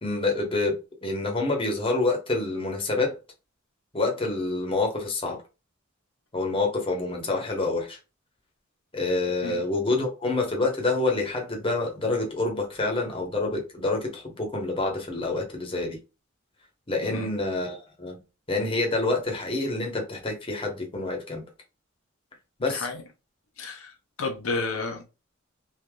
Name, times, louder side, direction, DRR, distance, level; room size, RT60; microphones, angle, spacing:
voice 1, 0.0-3.2 3.9-5.4 6.3-8.0 8.9-16.0 16.9-18.2 18.5-21.4 22.6-22.9, left 3 dB, 25° left, 1.0 m, -27 dB
voice 2, 22.6-23.0 23.6-25.1, left 3 dB, 85° left, 0.8 m, -32 dB
3.3 x 2.7 x 2.3 m
head